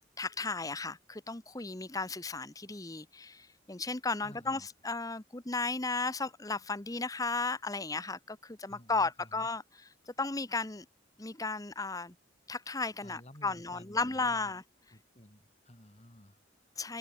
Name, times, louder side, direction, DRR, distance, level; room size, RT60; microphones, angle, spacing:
voice 1, 0.2-9.6 10.1-10.9 11.2-12.1 12.5-14.6 16.8-17.0, left 3 dB, 20° left, 1.0 m, -35 dB
voice 2, 4.2-4.7 8.7-9.5 13.0-14.6 14.9-16.8, left 1 dB, 35° left, 4.9 m, -54 dB
head